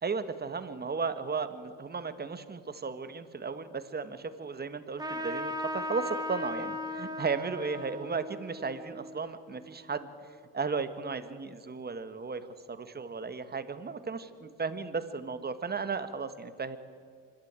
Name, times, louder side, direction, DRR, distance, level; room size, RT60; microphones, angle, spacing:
voice 1, 0.0-10.1 10.5-16.8, right 5 dB, 25° right, 11 dB, 1.5 m, -35 dB
Trumpet, 5.0-10.0, left 1 dB, 10° right, 2.8 m, -38 dB
25.0 x 12.0 x 8.9 m, 2.3 s
supercardioid pair, 80°, 37 cm